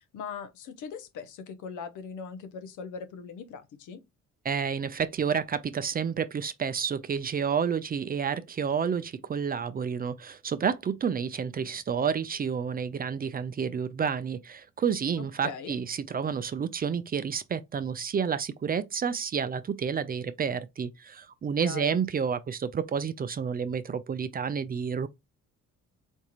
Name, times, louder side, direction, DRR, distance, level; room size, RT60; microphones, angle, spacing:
voice 1, 0.1-4.0 15.2-15.7 21.6-22.0, left 6 dB, 80° left, 0.8 m, -40 dB
voice 2, 4.4-25.1, right 7 dB, 30° right, 0.4 m, -30 dB
4.4 x 2.4 x 2.9 m
cardioid pair, 90°, 30 cm